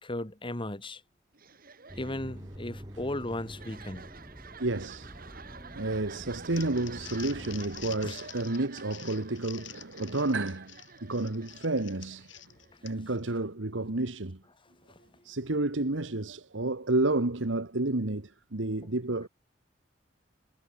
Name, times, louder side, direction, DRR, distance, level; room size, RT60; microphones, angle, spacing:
voice 1, 0.0-1.0 2.0-4.0 8.0-8.2 14.9-15.1, left 1 dB, 30° left, 2.3 m, -36 dB
sound 1, 1.3-13.0, right 6 dB, 50° right, 6.7 m, -51 dB
sound 2, 1.9-8.1, equal, 20° right, 4.1 m, -46 dB
voice 2, 4.6-12.3 12.8-14.4 15.2-19.3, right 2 dB, 80° right, 1.6 m, -31 dB
Crumpling crinkling, 6.3-13.2, left 12 dB, 80° left, 7.8 m, -47 dB
head